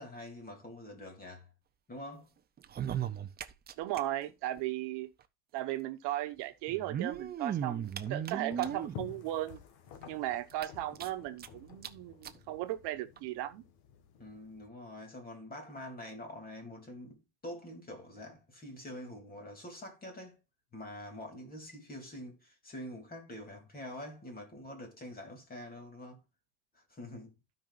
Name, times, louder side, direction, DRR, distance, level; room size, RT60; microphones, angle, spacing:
voice 1, 0.0-1.5 1.9-2.4 14.2-20.4 20.7-26.2 26.7-27.4, left 1 dB, 20° left, 3.0 m, -46 dB
sound 1, 2.6-4.0 4.3-4.4 4.6-4.7 5.7-5.8 6.7-9.0 9.6-9.7 10.0-10.1 10.5-11.5 11.8-11.9 12.2-12.4 13.2-13.3, right 9 dB, 20° right, 0.6 m, -36 dB
voice 2, 3.8-5.1 5.5-9.6 10.1-13.6, right 14 dB, 65° right, 1.2 m, -36 dB
sound 2, 7.5-14.7, left 7 dB, 60° left, 1.9 m, -52 dB
15.5 x 5.4 x 2.5 m
cardioid pair, 150°, 43 cm